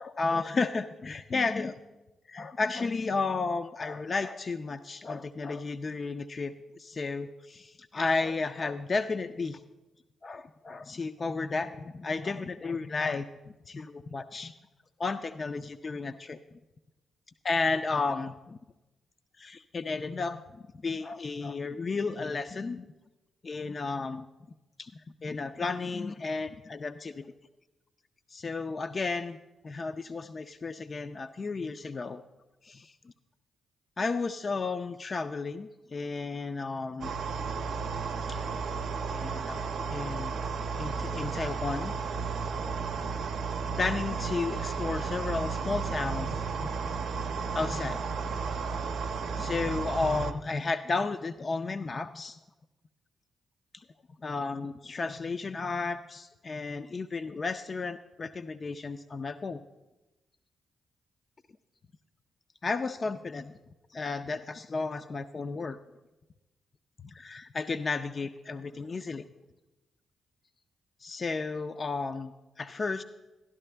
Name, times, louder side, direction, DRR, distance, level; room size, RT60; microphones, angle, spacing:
voice 1, 0.0-1.7 2.3-9.6 10.2-13.3 13.7-14.5 15.0-16.4 17.4-18.6 19.4-22.9 23.4-24.3 24.8-24.9 25.2-27.3 28.3-29.4 29.6-32.2 32.6-32.9 34.0-37.1 38.3-38.6 39.1-40.4 40.8-41.9 43.8-46.7 47.5-48.0 48.3-48.4 49.4-52.4 53.7-53.8 54.2-59.6 62.6-63.5 63.9-65.8 67.0-69.2 71.0-73.0, left 4 dB, 45° left, 9 dB, 0.4 m, -33 dB
sound 1, 37.0-50.3, right 5 dB, 70° right, 0.6 m, -33 dB
12.0 x 11.5 x 3.3 m, 1.0 s
hypercardioid pair, 40°, 0 cm